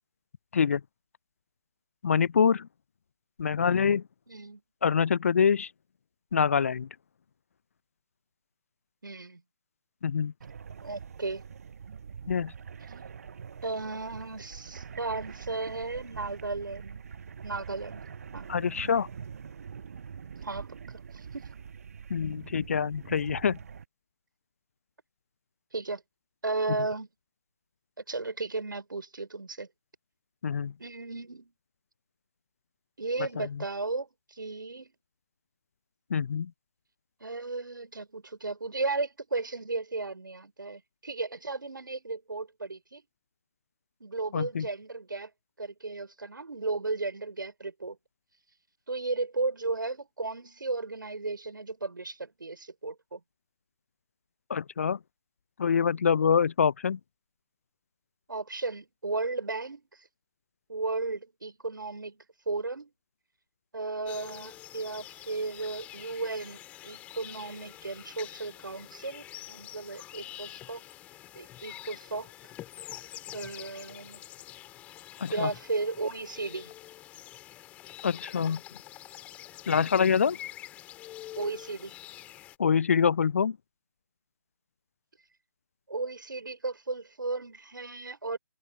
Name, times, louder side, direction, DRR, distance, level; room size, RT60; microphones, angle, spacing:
voice 1, 2.0-2.7 3.4-4.0 4.8-5.7 6.3-6.9 10.0-10.3 12.3-12.5 18.5-19.1 22.1-23.6 30.4-30.7 33.4-33.5 36.1-36.5 44.3-44.7 54.5-55.0 55.6-57.0 75.2-75.5 78.0-78.6 79.7-80.4 82.6-83.6, left 6 dB, 40° left, 0.6 m, -25 dB
voice 2, 4.3-4.6 9.0-9.4 10.8-11.4 13.6-17.0 17.4-18.0 18.3-18.5 20.4-21.5 25.7-26.0 26.4-27.1 28.1-29.7 30.8-31.5 33.0-34.9 37.2-43.0 44.0-45.3 45.6-48.0 48.9-53.2 58.3-59.8 60.7-62.9 63.7-70.9 71.4-72.3 73.3-74.2 75.3-76.7 79.7-79.9 81.4-81.9 85.9-88.4, right 3 dB, 65° right, 5.2 m, -35 dB
sound 1, 10.4-23.8, right 6 dB, 45° right, 1.3 m, -44 dB
sound 2, 64.1-82.6, left 14 dB, 10° left, 3.5 m, -46 dB
figure-of-eight pair, 145°, 11 cm